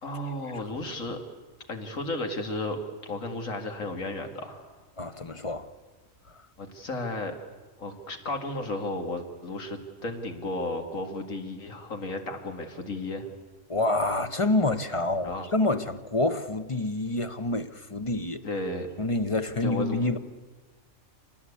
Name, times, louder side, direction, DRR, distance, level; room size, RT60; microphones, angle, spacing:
voice 1, 0.0-1.2 1.7-4.8 6.6-7.4 7.8-13.3 15.2-15.5 18.4-18.9 19.6-20.0, left 2 dB, 80° left, 2.6 m, -34 dB
voice 2, 5.0-5.7 13.7-18.4 19.0-20.2, left 2 dB, 25° left, 1.0 m, -27 dB
26.5 x 19.5 x 8.4 m
omnidirectional pair, 1.4 m